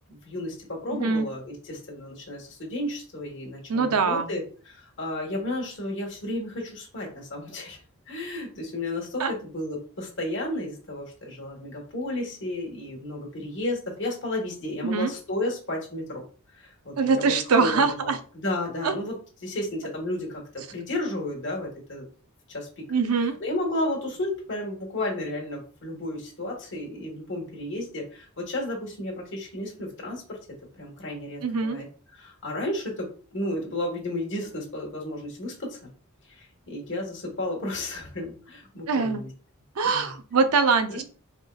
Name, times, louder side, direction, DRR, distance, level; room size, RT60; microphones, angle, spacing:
voice 1, 0.1-7.8 8.1-16.2 16.6-19.2 19.4-22.1 22.5-30.4 30.8-35.9 36.3-39.3 39.8-40.1 40.9-41.0, left 1 dB, 60° left, -1 dB, 1.4 m, -33 dB
voice 2, 0.9-1.3 3.7-4.3 9.2-9.3 14.8-15.1 17.0-18.2 18.8-18.9 22.9-23.4 31.4-31.8 38.9-39.2 39.8-41.0, right 4 dB, 90° right, 8 dB, 0.6 m, -23 dB
4.3 x 3.6 x 2.3 m, 0.41 s
head